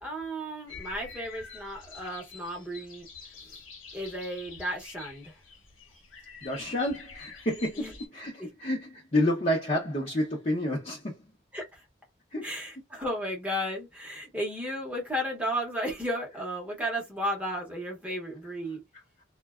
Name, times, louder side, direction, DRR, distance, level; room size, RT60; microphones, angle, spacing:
voice 1, 0.0-3.1 3.9-5.3 7.8-7.9 8.4-8.5 11.5-11.8 12.4-18.8, equal, 5° right, 0.8 m, -34 dB
sound 1, 0.7-8.1, left 5 dB, 80° left, 0.9 m, -47 dB
voice 2, 6.4-11.1 12.3-12.5, left 1 dB, 35° left, 0.6 m, -29 dB
2.5 x 2.2 x 2.3 m
head